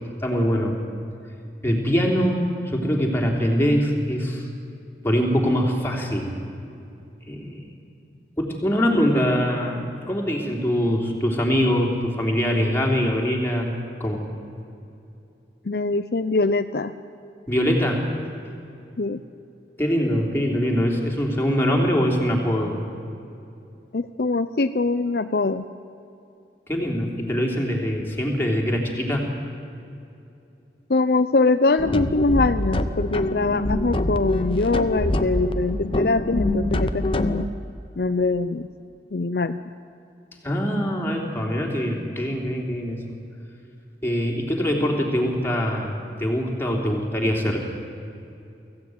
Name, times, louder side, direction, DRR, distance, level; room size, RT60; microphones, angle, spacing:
voice 1, 0.2-0.8 1.6-4.5 5.0-6.3 7.3-7.6 8.4-13.7 14.0-14.2 17.5-18.0 19.8-22.8 26.7-29.3 40.4-43.0 44.0-45.9 46.2-47.6, equal, 15° left, -1 dB, 3.3 m, -23 dB
voice 2, 15.6-16.9 19.0-19.2 23.9-25.6 30.9-37.5 38.0-38.7 39.1-39.6, left 3 dB, 60° left, 10 dB, 0.6 m, -23 dB
sound 1, 31.8-37.4, left 1 dB, 30° left, 0.8 m, -25 dB
23.5 x 16.0 x 9.4 m, 2.7 s
head